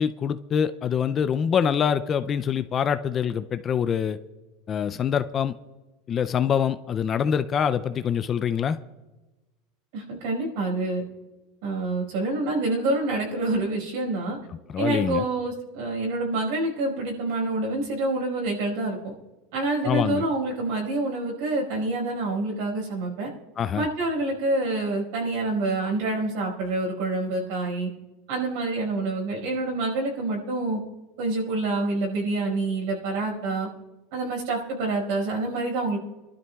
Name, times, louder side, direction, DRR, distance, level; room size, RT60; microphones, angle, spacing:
voice 1, 0.0-4.2 4.7-5.5 6.1-8.8 14.7-15.2 19.8-20.2 23.6-23.9, left 8 dB, 20° left, 12 dB, 0.3 m, -25 dB
voice 2, 9.9-11.0 11.6-14.4 14.8-19.1 19.5-23.3 23.7-27.9 28.3-30.8 31.2-33.7 34.1-36.0, right 2 dB, 60° right, 0 dB, 4.8 m, -27 dB
27.5 x 12.5 x 2.3 m, 1.1 s
supercardioid pair, 170°, 0 cm